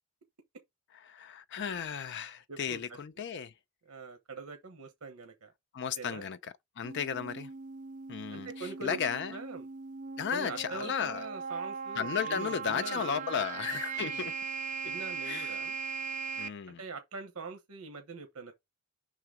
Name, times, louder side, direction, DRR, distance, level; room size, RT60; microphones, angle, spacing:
voice 1, 0.9-3.5 5.7-7.5 8.1-9.4 10.2-11.2 12.0-14.3 15.2-15.5 16.4-16.8, left 7 dB, 50° left, 0.4 m, -34 dB
voice 2, 2.5-2.8 3.9-5.5 6.0-6.2 7.1-7.3 8.3-9.0 9.3-9.6 10.3-13.3 14.0-14.3 14.8-15.7 16.7-18.5, right 4 dB, 80° right, 1.0 m, -43 dB
sound 1, 6.8-16.5, right 5 dB, 35° right, 0.5 m, -39 dB
5.7 x 3.8 x 4.8 m
head